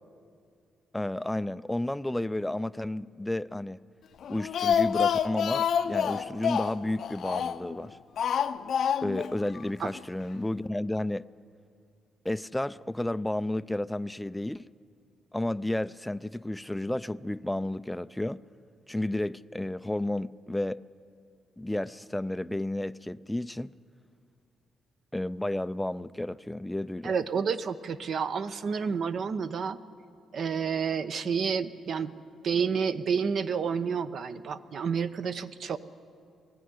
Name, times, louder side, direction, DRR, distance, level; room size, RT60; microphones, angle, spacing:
voice 1, 0.9-3.8 4.3-8.0 9.0-11.2 12.2-14.7 15.3-18.4 18.9-20.8 21.6-23.7 25.1-27.1, left 1 dB, 5° left, 0.4 m, -32 dB
Speech, 4.2-7.7 8.2-9.3 9.6-9.7 10.0-10.1, left 8 dB, 65° left, 0.6 m, -27 dB
voice 2, 27.0-29.8 30.3-32.1 32.4-35.8, right 6 dB, 55° right, 0.9 m, -29 dB
21.5 x 16.0 x 9.6 m
cardioid pair, 90°, 0 cm